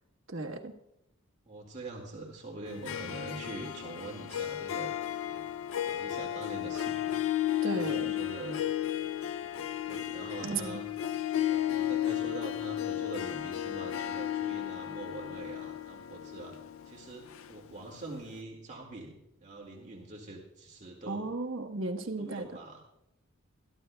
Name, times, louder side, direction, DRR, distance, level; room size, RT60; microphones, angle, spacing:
voice 1, 0.3-0.7 7.6-8.1 10.4-10.8 21.1-22.5, right 3 dB, 65° right, 3 dB, 1.4 m, -35 dB
voice 2, 1.5-5.5 5.8-7.2 7.7-8.8 9.5-10.9 11.5-16.5 16.9-19.1 19.4-21.3 22.2-22.8, right 2 dB, 35° right, -1 dB, 2.0 m, -44 dB
Harp, 2.7-18.0, left 11 dB, 70° left, 0.4 m, -34 dB
23.0 x 13.5 x 2.3 m, 0.85 s
head